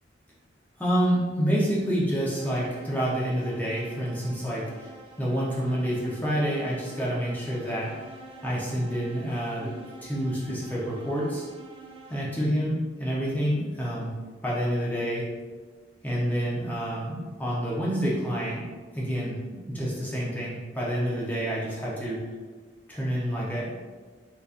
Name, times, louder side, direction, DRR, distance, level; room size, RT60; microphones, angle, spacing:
voice 1, 0.8-7.9 8.4-11.5 12.1-14.1 14.4-15.3 16.0-18.6 18.9-22.2 22.9-23.7, equal, 10° left, -6 dB, 0.7 m, -28 dB
sound 1, 2.3-12.6, right 3 dB, 30° right, 0.3 m, -48 dB
3.7 x 2.9 x 2.5 m, 1.4 s
head